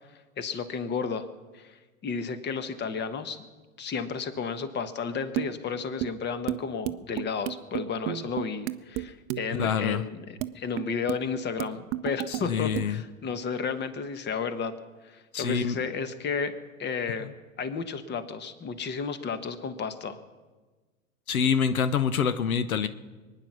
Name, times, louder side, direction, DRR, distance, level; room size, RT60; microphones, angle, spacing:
voice 1, 0.4-1.3 1.5-3.4 3.8-14.7 15.0-16.5 16.8-17.3 17.6-20.2, left 5 dB, 25° left, 11 dB, 1.3 m, -32 dB
sound 1, 5.4-5.5 6.0-6.1 6.5-6.6 6.9-9.1 9.3-9.6 10.4-10.5 10.8-11.2 11.6-12.4 12.8-12.9, right 16 dB, 30° right, 0.6 m, -31 dB
voice 2, 9.5-10.0 12.3-13.0 15.3-15.8 17.2-17.3 21.3-22.9, left 7 dB, 80° left, 13 dB, 0.9 m, -26 dB
23.5 x 9.9 x 6.2 m, 1.3 s
hypercardioid pair, 100°, 42 cm